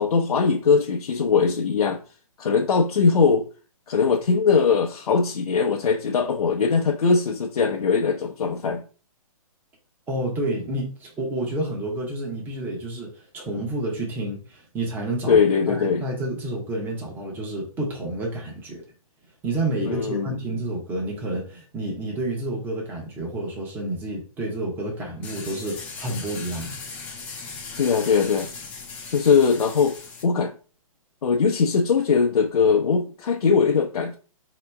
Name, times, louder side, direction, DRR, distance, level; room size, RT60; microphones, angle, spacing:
voice 1, 0.0-2.0 2.4-3.5 3.9-8.8 15.3-16.0 19.8-20.4 27.8-28.5 29.1-30.0 30.2-30.5 31.2-34.2, left 5 dB, 75° left, 0.7 m, -21 dB
voice 2, 10.1-15.4 15.7-18.8 19.4-26.8, right 1 dB, 10° right, 0.9 m, -29 dB
sound 1, 25.2-30.2, left 4 dB, 5° left, 0.3 m, -38 dB
4.3 x 2.9 x 3.3 m
hypercardioid pair, 155°, 19 cm